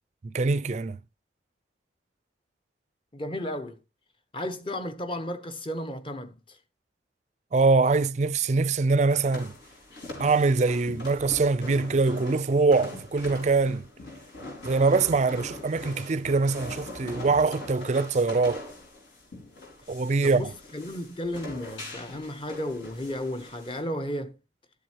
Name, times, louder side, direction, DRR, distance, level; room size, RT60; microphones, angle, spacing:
voice 1, 0.2-1.0 7.5-9.5 10.2-13.8 14.6-18.6 19.9-20.5, right 3 dB, 40° right, 0.4 m, -23 dB
voice 2, 3.1-3.8 4.3-6.6 20.2-24.4, left 1 dB, 30° left, 0.9 m, -34 dB
sound 1, 9.1-23.8, left 2 dB, 80° left, 5.4 m, -42 dB
13.0 x 7.7 x 2.9 m
head